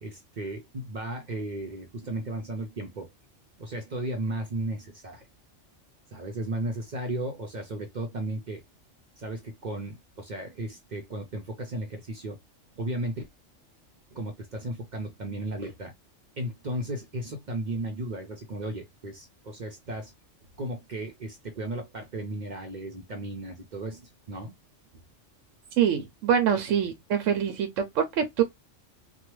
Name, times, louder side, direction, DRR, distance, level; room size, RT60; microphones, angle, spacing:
voice 1, 0.0-3.1 3.6-5.3 6.1-8.6 9.2-12.4 12.8-13.3 14.1-15.9 16.4-20.1 20.6-24.5, right 1 dB, 50° right, 0.6 m, -35 dB
voice 2, 25.8-28.4, right 8 dB, 80° right, 0.9 m, -25 dB
3.1 x 2.3 x 3.0 m
omnidirectional pair, 1.3 m